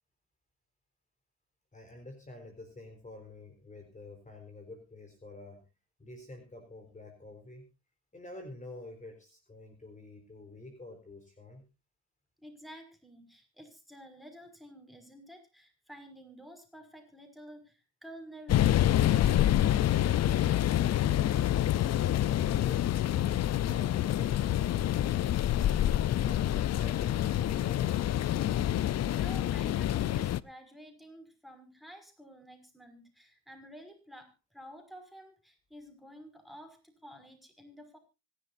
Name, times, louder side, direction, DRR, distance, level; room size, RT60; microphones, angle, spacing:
voice 1, 1.7-5.6 6.0-7.6 8.1-11.6 23.7-25.2 25.9-28.0, left 2 dB, 25° left, 5 dB, 4.3 m, -48 dB
voice 2, 12.4-19.6 29.0-38.0, equal, ahead, 6 dB, 5.7 m, -51 dB
sound 1, 18.5-30.4, left 12 dB, 60° left, 0.7 m, -27 dB
25.0 x 11.5 x 2.7 m, 0.29 s
cardioid pair, 80°, 29 cm